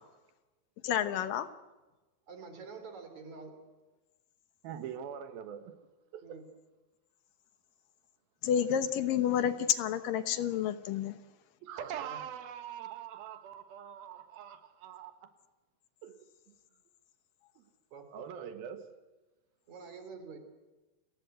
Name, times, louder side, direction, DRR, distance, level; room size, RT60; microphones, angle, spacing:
voice 1, 0.8-1.5 8.4-11.2, left 9 dB, 75° left, 11 dB, 2.6 m, -29 dB
voice 2, 2.3-3.5 6.2-6.4 11.8-12.2 17.9-18.5 19.7-20.4, right 5 dB, 50° right, 7 dB, 4.6 m, -47 dB
voice 3, 4.6-5.7 6.1-6.4 11.6-15.1 16.0-16.2 18.1-18.9, right 9 dB, 80° right, 9 dB, 3.3 m, -43 dB
29.5 x 18.5 x 8.0 m, 1.2 s
omnidirectional pair, 4.2 m